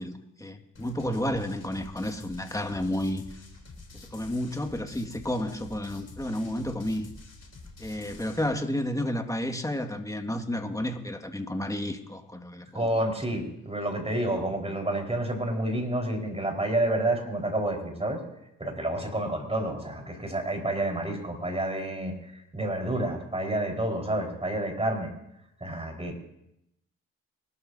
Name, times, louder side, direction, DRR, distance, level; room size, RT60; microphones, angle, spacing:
voice 1, 0.0-3.2 3.9-7.1 7.8-12.9, left 1 dB, 10° left, 5 dB, 1.9 m, -31 dB
sound 1, 0.8-8.5, left 3 dB, 45° left, 3.6 m, -48 dB
voice 2, 12.7-18.2 18.6-25.1 25.6-26.2, right 1 dB, 15° right, 2 dB, 4.6 m, -29 dB
25.0 x 13.0 x 2.8 m, 0.82 s
hypercardioid pair, 50°, 35 cm